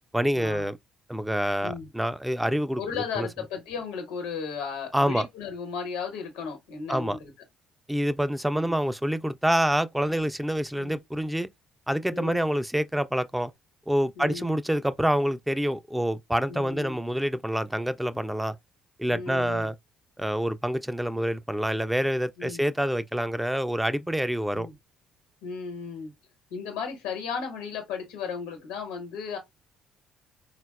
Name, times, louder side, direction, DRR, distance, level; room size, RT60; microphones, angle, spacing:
voice 1, 0.1-0.8 1.1-2.8 3.2-3.3 4.9-5.3 6.9-7.2 7.9-11.5 11.9-13.5 13.9-18.6 19.0-19.7 20.2-24.7, equal, 5° right, 0.3 m, -27 dB
voice 2, 2.8-7.3 8.5-8.8 10.8-11.0 12.1-12.5 14.2-14.6 16.5-17.0 19.1-19.7 22.4-22.6 24.5-24.7 25.4-26.1 26.5-29.4, left 6 dB, 80° left, 1.1 m, -35 dB
3.9 x 2.2 x 2.3 m
hypercardioid pair, 55°, 0 cm